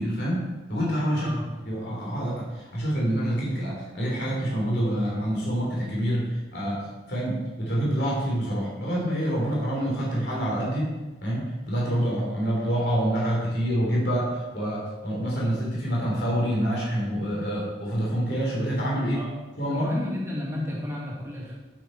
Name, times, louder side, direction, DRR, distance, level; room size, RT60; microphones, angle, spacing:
voice 1, 0.0-1.3 1.7-10.9 11.2-19.2 19.6-19.9, equal, 60° left, -4 dB, 3.3 m, -27 dB
voice 2, 1.1-1.7 19.1-19.3 19.7-21.5, left 1 dB, 15° right, -5 dB, 2.2 m, -32 dB
9.6 x 8.8 x 4.6 m, 1.2 s
head